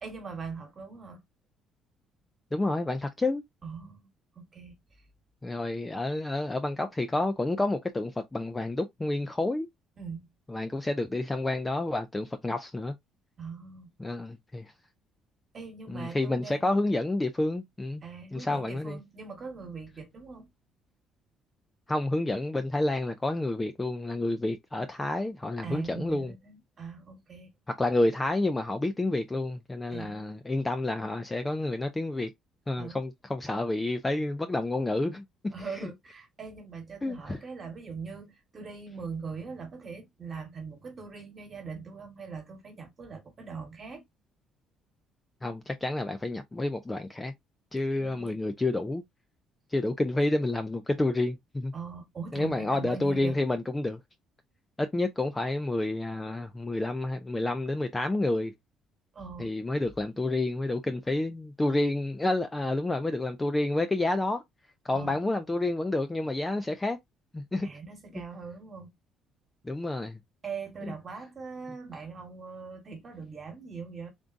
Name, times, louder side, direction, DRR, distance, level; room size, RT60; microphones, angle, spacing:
voice 1, 0.0-1.2 3.6-4.1 4.3-4.8 10.0-10.2 13.4-13.9 15.5-16.7 18.0-20.5 25.6-27.5 29.9-30.2 32.8-33.0 35.5-44.0 47.9-48.4 51.7-53.4 59.1-59.5 64.9-65.2 67.6-68.9 70.4-74.1, right 5 dB, 25° right, 1.3 m, -41 dB
voice 2, 2.5-3.4 5.4-9.7 10.5-12.9 14.0-14.7 15.9-18.0 18.3-19.0 21.9-26.3 27.7-32.3 32.7-35.2 35.8-35.9 37.0-37.4 45.4-47.3 47.7-49.0 49.7-51.7 52.3-54.0 54.8-58.5 59.4-64.4 64.8-67.0 67.3-67.7 69.6-70.2, left 2 dB, 10° left, 0.3 m, -29 dB
3.8 x 3.6 x 2.5 m
cardioid pair, 170°, 0 cm